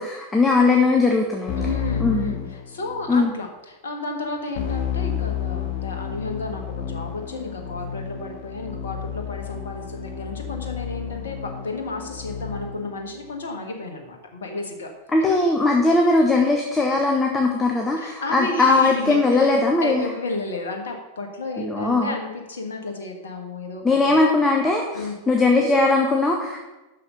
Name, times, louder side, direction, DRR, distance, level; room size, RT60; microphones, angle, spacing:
voice 1, 0.0-1.6 2.0-2.3 3.1-3.3 15.1-20.0 21.6-22.1 23.8-26.6, left 3 dB, 10° left, 1 dB, 1.0 m, -19 dB
Keyboard (musical), 1.5-3.2 4.5-12.9, left 8 dB, 50° left, 1.1 m, -31 dB
voice 2, 1.6-14.9 18.0-19.5 19.8-24.2 24.9-25.1, left 2 dB, 65° left, 3 dB, 1.5 m, -32 dB
6.6 x 6.4 x 6.7 m, 1.1 s
figure-of-eight pair, 90°, 0 cm